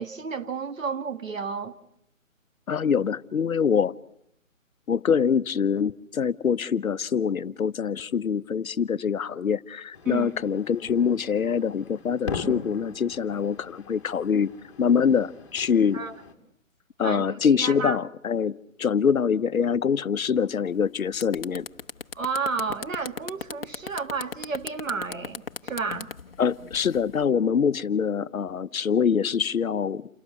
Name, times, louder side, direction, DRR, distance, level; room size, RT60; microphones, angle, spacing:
voice 1, 0.0-1.8 10.1-10.3 15.9-16.2 17.0-18.0 22.2-26.1, right 5 dB, 70° right, 2.1 m, -31 dB
voice 2, 2.7-3.9 4.9-14.5 14.8-16.0 17.0-21.7 26.4-30.0, left 7 dB, 90° left, 0.9 m, -24 dB
sound 1, 9.9-16.3, left 5 dB, 20° left, 2.1 m, -40 dB
sound 2, 20.7-20.8 21.1-27.2, left 5 dB, 45° left, 1.0 m, -36 dB
29.0 x 18.5 x 8.2 m
hypercardioid pair, 175°, 41 cm